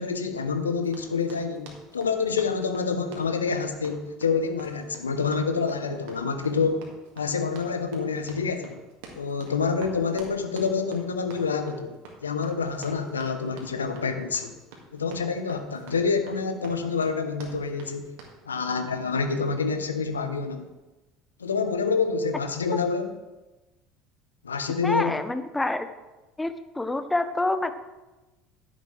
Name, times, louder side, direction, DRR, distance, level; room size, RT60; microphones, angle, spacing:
voice 1, 0.0-6.9 7.1-8.8 9.1-14.6 14.9-18.0 18.4-20.7 21.4-23.2 24.4-25.2, left 5 dB, 85° left, 8 dB, 0.9 m, -27 dB
Run, 0.8-18.4, right 3 dB, 65° right, 2.0 m, -48 dB
voice 2, 24.8-25.9 26.4-27.7, left 2 dB, 10° left, 11 dB, 0.9 m, -27 dB
11.0 x 10.5 x 3.3 m, 1.1 s
figure-of-eight pair, 65°, 0 cm